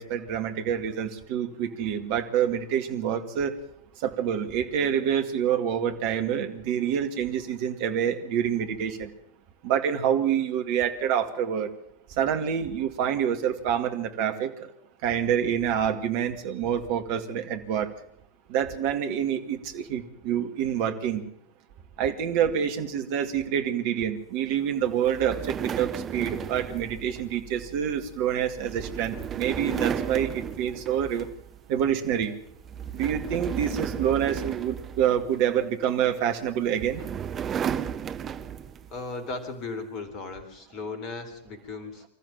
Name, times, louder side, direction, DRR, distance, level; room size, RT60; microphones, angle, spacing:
voice 1, 0.0-3.5 4.0-9.1 9.6-11.7 12.2-14.7 15.0-17.9 18.5-21.2 22.0-31.3 31.7-32.3 32.9-37.0, right 9 dB, 45° right, 7 dB, 2.2 m, -27 dB
sound 1, 25.0-31.6 31.9-32.2 32.6-35.6 36.5-38.9, right 8 dB, 25° right, 1.0 m, -34 dB
voice 2, 38.9-42.1, left 3 dB, 35° left, 10 dB, 3.6 m, -36 dB
25.5 x 14.0 x 7.5 m, 0.74 s
figure-of-eight pair, 90°, 0 cm